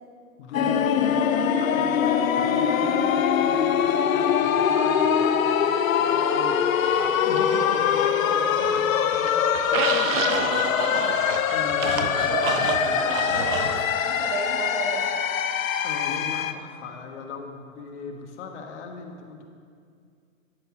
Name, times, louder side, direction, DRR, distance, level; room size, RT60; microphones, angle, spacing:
voice 1, 0.4-6.6 6.9-11.1 11.5-13.0 15.8-19.4, left 4 dB, 55° left, 3 dB, 1.4 m, -38 dB
sound 1, 0.5-16.5, left 8 dB, 75° left, 0.7 m, -23 dB
sound 2, 6.8-8.2 8.5-13.8, right 7 dB, 70° right, 0.9 m, -31 dB
voice 2, 12.3-15.0, right 4 dB, 50° right, -2 dB, 2.6 m, -30 dB
12.0 x 4.4 x 7.1 m, 2.3 s
hypercardioid pair, 135°, 41 cm